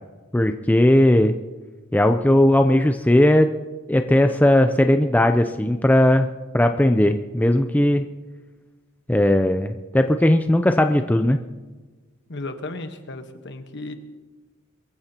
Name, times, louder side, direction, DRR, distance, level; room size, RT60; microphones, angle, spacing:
voice 1, 0.3-1.3 1.9-3.5 3.9-6.3 6.5-8.1 9.1-11.4, left 1 dB, 10° left, 7 dB, 0.5 m, -17 dB
voice 2, 12.3-14.0, left 2 dB, 60° left, 7 dB, 1.3 m, -34 dB
23.0 x 14.5 x 2.9 m, 1.3 s
head